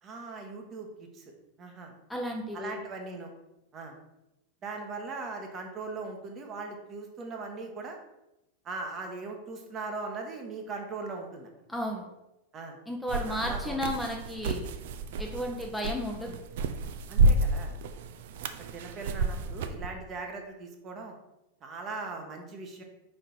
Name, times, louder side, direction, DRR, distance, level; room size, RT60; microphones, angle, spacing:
voice 1, 0.0-1.3 1.6-1.9 2.5-3.3 3.7-4.0 4.6-8.0 8.6-11.5 12.5-12.8 13.3-13.8 17.1-17.7 18.5-21.1 21.6-22.8, right 3 dB, 30° right, 3 dB, 1.0 m, -39 dB
voice 2, 2.1-2.8 11.7-12.0 12.9-14.6 15.2-16.4, equal, 5° left, 0 dB, 0.7 m, -33 dB
sound 1, 13.1-19.9, right 2 dB, 55° right, 0.4 m, -30 dB
5.0 x 4.4 x 4.3 m, 0.91 s
figure-of-eight pair, 90°, 0 cm